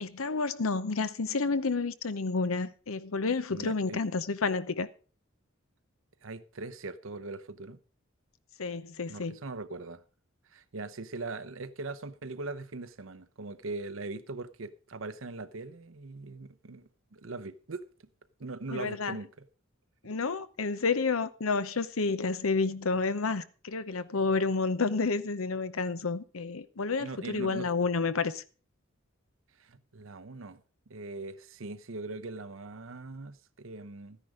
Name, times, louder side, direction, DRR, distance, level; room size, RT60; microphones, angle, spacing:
voice 1, 0.0-4.9 8.6-9.4 18.7-19.2 20.0-28.4, left 4 dB, 90° left, 0.8 m, -30 dB
voice 2, 3.5-4.0 6.2-7.8 9.1-10.0 10.5-17.8 18.4-19.5 27.0-27.7 29.6-30.6 30.9-34.2, right 3 dB, 70° right, 0.8 m, -41 dB
13.5 x 10.0 x 4.9 m
head